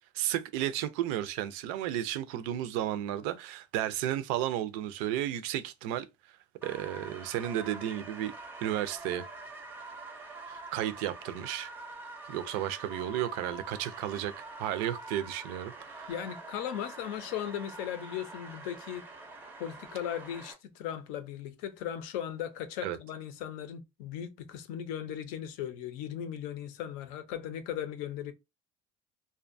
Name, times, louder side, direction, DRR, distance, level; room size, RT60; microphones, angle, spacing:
voice 1, 0.1-6.1 6.6-8.3 8.6-9.3 10.5-11.7 12.3-16.1 22.8-23.0, right 12 dB, 75° right, 0.4 m, -33 dB
sound 1, 6.6-20.5, right 2 dB, 15° right, 0.5 m, -46 dB
voice 2, 16.1-19.0 19.6-28.3, left 10 dB, 75° left, 0.5 m, -37 dB
2.6 x 2.2 x 2.5 m
cardioid pair, 170°, 14 cm